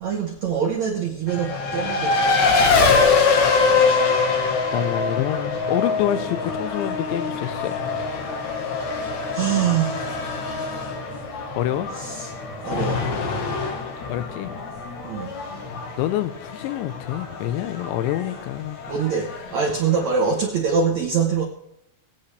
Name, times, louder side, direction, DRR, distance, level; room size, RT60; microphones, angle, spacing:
voice 1, 0.0-2.7 9.3-10.2 11.9-12.3 12.6-13.0 15.0-15.3 18.9-21.4, right 6 dB, 85° right, 1 dB, 1.5 m, -24 dB
Race car auto racing, 1.3-20.4, left 4 dB, 65° left, 1.9 m, -24 dB
voice 2, 4.7-7.7 11.6-11.9 14.1-14.6 16.0-18.8, left 12 dB, 85° left, 12 dB, 3.1 m, -26 dB
22.0 x 8.8 x 3.3 m, 0.78 s
omnidirectional pair, 5.1 m